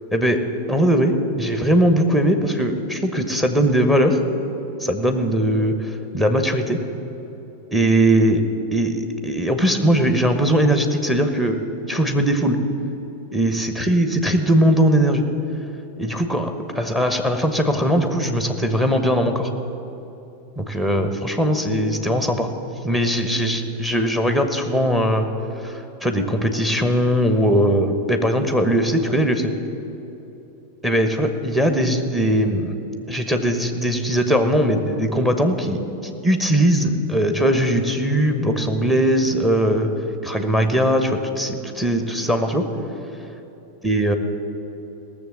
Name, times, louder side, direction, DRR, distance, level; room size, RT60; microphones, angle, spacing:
voice 1, 0.1-0.4 0.7-4.2 4.8-6.8 7.7-8.4 8.7-11.6 11.9-12.6 13.3-15.2 16.0-19.5 20.6-22.5 22.8-25.3 25.6-29.5 30.8-32.8 33.1-39.9 40.2-42.7 43.8-44.2, equal, 5° right, 6 dB, 1.1 m, -20 dB
17.5 x 7.0 x 7.3 m, 3.0 s
figure-of-eight pair, 90°, 0 cm